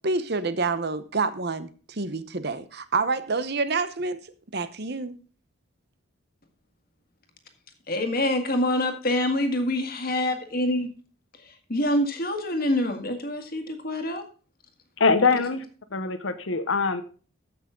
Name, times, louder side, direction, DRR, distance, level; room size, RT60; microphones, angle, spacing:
voice 1, 0.0-1.7 2.0-4.2 4.5-5.2, right 3 dB, 50° right, 0.8 m, -27 dB
voice 2, 7.9-10.9 11.7-14.2, left 1 dB, 45° left, 1.8 m, -26 dB
voice 3, 15.0-15.6 15.9-17.0, left 4 dB, 65° left, 0.9 m, -23 dB
14.5 x 6.0 x 3.8 m
head